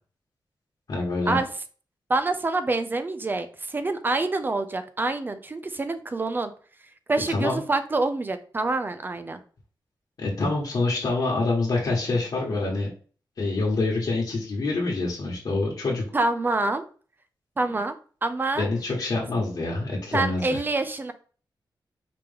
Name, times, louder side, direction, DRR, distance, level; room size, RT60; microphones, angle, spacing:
voice 1, 0.9-1.4 7.3-7.6 10.2-12.9 13.4-16.0 18.6-20.6, left 3 dB, 55° left, -3 dB, 1.3 m, -26 dB
voice 2, 2.1-6.5 7.1-9.4 16.1-16.8 17.6-18.0 18.2-18.7 20.1-21.1, right 2 dB, 25° right, 10 dB, 0.5 m, -26 dB
5.0 x 3.0 x 3.4 m, 0.40 s
wide cardioid pair, 150°, 8 cm